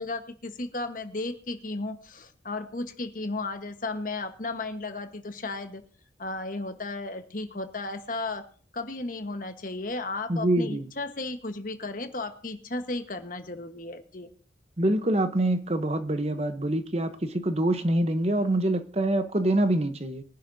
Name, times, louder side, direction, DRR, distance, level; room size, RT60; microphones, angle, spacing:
voice 1, 0.0-5.8 6.2-8.4 8.7-14.3, left 2 dB, 45° left, 7 dB, 1.2 m, -34 dB
voice 2, 10.3-10.9 14.8-20.2, right 1 dB, 35° right, 9 dB, 0.8 m, -25 dB
22.0 x 11.0 x 2.7 m, 0.43 s
head